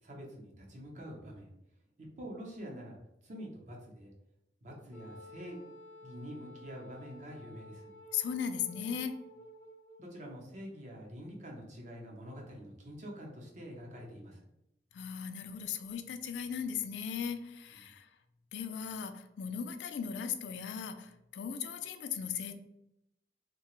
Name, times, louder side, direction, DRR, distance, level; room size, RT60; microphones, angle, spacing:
voice 1, 0.0-1.5 2.0-3.0 3.2-4.1 4.6-5.7 6.0-7.9 10.0-14.5 17.7-17.9, equal, 45° right, -1 dB, 0.7 m, -46 dB
Wind instrument woodwind instrument, 4.9-10.1, equal, 15° left, 0.5 m, -53 dB
voice 2, 8.1-9.1 14.9-18.1 18.5-22.6, left 7 dB, 85° left, 8 dB, 0.3 m, -37 dB
2.8 x 2.2 x 3.0 m, 0.85 s
head